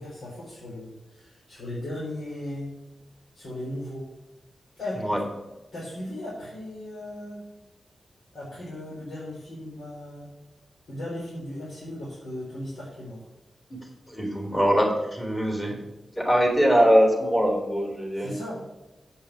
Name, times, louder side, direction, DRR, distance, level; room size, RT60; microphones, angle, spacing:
voice 1, 0.0-2.7 3.3-4.1 4.8-5.1 5.7-7.4 8.3-10.3 10.9-13.3 18.1-18.9, left 1 dB, 80° left, -7 dB, 3.9 m, -37 dB
voice 2, 13.7-15.8 16.1-18.4, equal, 15° left, 1 dB, 3.3 m, -22 dB
8.7 x 5.5 x 7.8 m, 1.0 s
wide cardioid pair, 125°, 0 cm